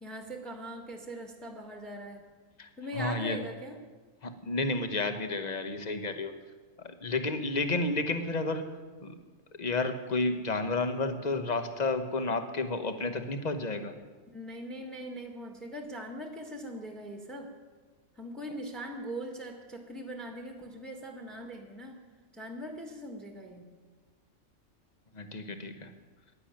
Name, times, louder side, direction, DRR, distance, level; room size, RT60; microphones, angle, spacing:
voice 1, 0.0-2.2 2.8-3.8 14.3-17.5 18.2-22.0 22.3-23.7, right 1 dB, ahead, 3 dB, 1.4 m, -41 dB
voice 2, 2.9-3.4 4.2-6.3 6.8-8.7 9.0-9.1 9.6-14.0 25.1-25.9, left 3 dB, 35° left, 8 dB, 1.0 m, -31 dB
11.0 x 10.5 x 8.8 m, 1.4 s
omnidirectional pair, 1.4 m